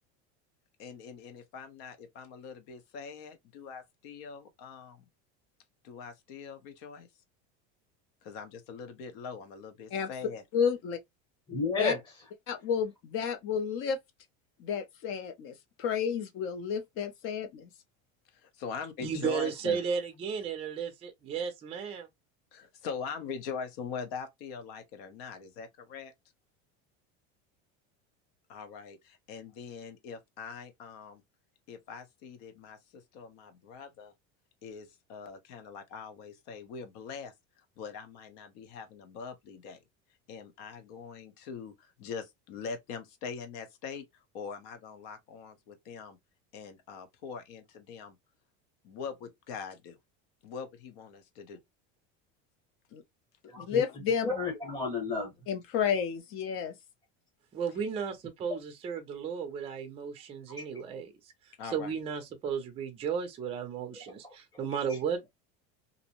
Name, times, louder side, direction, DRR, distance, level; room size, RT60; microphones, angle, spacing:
voice 1, 0.8-5.1 5.8-7.1 8.2-10.4 18.3-19.8 22.5-26.1 28.5-31.2 31.7-34.1 34.6-39.8 40.3-46.2 46.5-48.2 48.8-50.0 50.4-51.6 61.6-62.0, left 6 dB, 70° left, 0.8 m, -42 dB
voice 2, 10.5-11.0 11.8-11.9 12.5-14.0 14.6-17.7 52.9-53.0 53.6-54.3 55.5-56.7, left 7 dB, 45° left, 0.5 m, -31 dB
voice 3, 11.5-12.0 53.5-53.8 54.2-55.3 60.6-60.7, left 4 dB, 15° left, 1.0 m, -31 dB
voice 4, 19.0-22.1 57.5-61.1 61.6-65.3, right 7 dB, 20° right, 0.4 m, -34 dB
2.6 x 2.0 x 2.8 m
cardioid pair, 160°, 31 cm